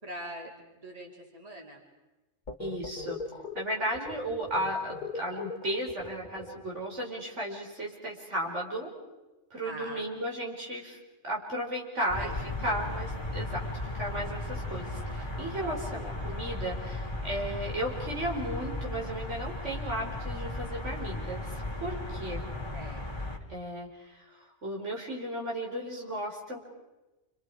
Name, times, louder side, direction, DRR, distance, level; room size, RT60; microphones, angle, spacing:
voice 1, 0.0-1.8 9.6-10.1 12.0-12.7 22.7-23.3, right 1 dB, 30° right, -1 dB, 3.5 m, -43 dB
sound 1, 2.5-6.9, left 3 dB, 40° left, 1.5 m, -40 dB
voice 2, 2.6-3.2 3.5-8.9 9.5-11.0 11.2-12.3 12.6-21.5 21.8-22.4 23.5-26.6, right 1 dB, 90° right, -2 dB, 5.3 m, -35 dB
sound 2, 12.1-23.4, left 2 dB, 20° left, 2.8 m, -36 dB
29.5 x 27.5 x 5.0 m, 1.1 s
omnidirectional pair, 1.2 m